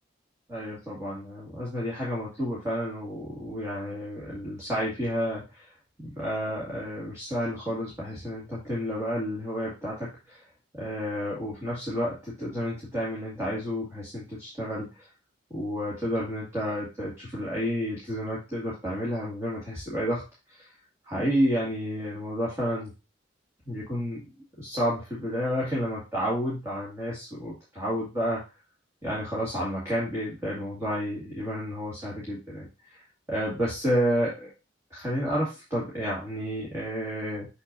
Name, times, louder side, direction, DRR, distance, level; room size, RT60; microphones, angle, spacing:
voice 1, 0.5-10.4 10.7-15.1 15.5-20.7 21.0-22.9 23.6-24.3 24.6-28.4 29.0-33.0 33.3-34.5 34.9-37.5, equal, 15° right, -7 dB, 2.2 m, -31 dB
6.8 x 6.3 x 2.6 m, 0.28 s
head